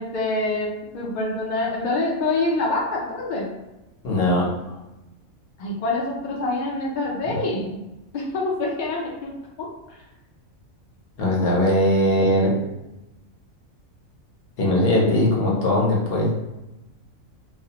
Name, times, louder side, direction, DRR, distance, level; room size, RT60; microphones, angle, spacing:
voice 1, 0.0-3.5 5.6-7.8 8.1-10.0, left 2 dB, 70° left, -2 dB, 0.4 m, -26 dB
voice 2, 4.0-4.4 11.2-12.5 14.6-16.3, left 1 dB, 55° left, -3 dB, 0.8 m, -20 dB
2.4 x 2.0 x 2.8 m, 0.99 s
omnidirectional pair, 1.4 m